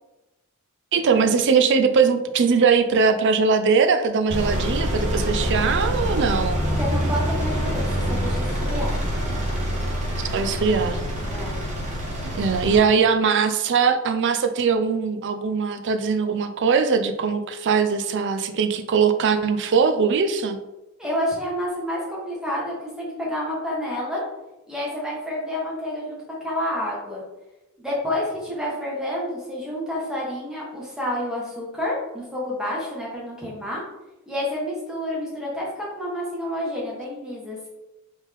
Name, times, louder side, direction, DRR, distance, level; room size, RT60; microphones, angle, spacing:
voice 1, 0.9-6.6 10.3-11.0 12.2-20.6, right 5 dB, 55° right, 8 dB, 0.4 m, -21 dB
Engine, 4.3-12.8, equal, 30° right, 1.2 m, -25 dB
voice 2, 6.8-9.0 11.2-11.6 21.0-24.2 24.7-27.2 27.8-33.8 34.3-37.7, left 1 dB, 5° right, -5 dB, 1.2 m, -29 dB
4.0 x 3.5 x 3.5 m, 0.99 s
head